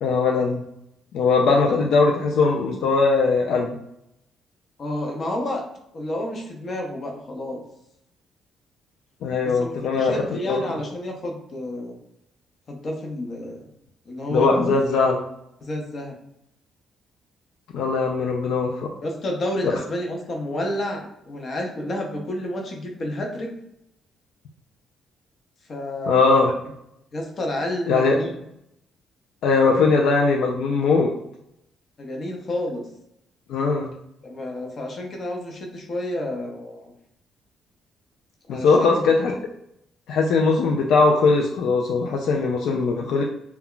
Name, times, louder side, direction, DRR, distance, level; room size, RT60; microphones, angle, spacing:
voice 1, 0.0-0.6 1.1-3.8 9.2-10.6 14.3-15.2 17.7-18.9 26.1-26.5 27.9-28.2 29.4-31.1 33.5-33.9 38.5-39.3 40.1-43.2, left 4 dB, 80° left, 0 dB, 0.3 m, -20 dB
voice 2, 4.8-5.6 5.9-7.6 9.4-12.0 12.7-13.6 14.1-14.7 15.6-16.1 19.0-23.5 25.7-26.4 27.1-28.3 32.0-32.8 34.2-36.9 38.5-39.0, left 1 dB, 50° left, 1 dB, 0.7 m, -30 dB
2.2 x 2.1 x 3.7 m, 0.78 s
cardioid pair, 90°, 0 cm